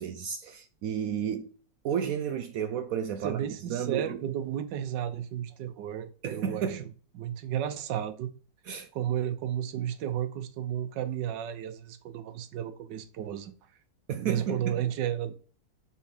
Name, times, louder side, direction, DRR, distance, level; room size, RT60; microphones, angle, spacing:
voice 1, 0.0-1.5 1.8-3.4 3.7-4.2 6.2-6.9 8.6-8.9 14.1-14.8, right 8 dB, 70° right, 0.9 m, -32 dB
voice 2, 3.2-6.8 7.1-8.3 8.9-13.5 14.1-15.3, right 10 dB, 90° right, 1.4 m, -33 dB
5.6 x 4.4 x 4.9 m
omnidirectional pair, 1.9 m